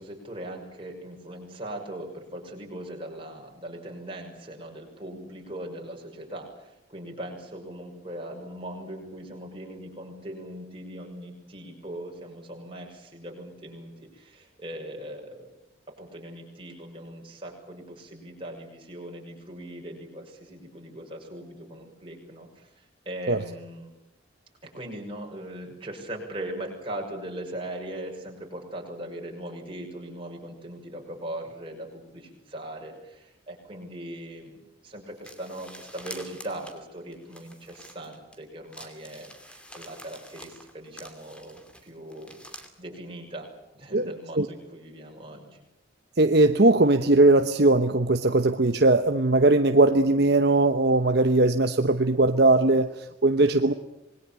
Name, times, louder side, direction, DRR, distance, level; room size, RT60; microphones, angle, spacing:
voice 1, 0.0-15.5 16.0-23.9 24.6-34.6 34.8-42.3 42.8-43.5 43.7-45.6, right 1 dB, 25° right, 1 dB, 6.3 m, -40 dB
sound 1, 35.2-38.4 38.7-42.7, equal, 5° left, 2.6 m, -47 dB
voice 2, 46.2-53.7, right 2 dB, 55° right, 8 dB, 1.0 m, -20 dB
26.5 x 21.0 x 8.8 m, 0.90 s
head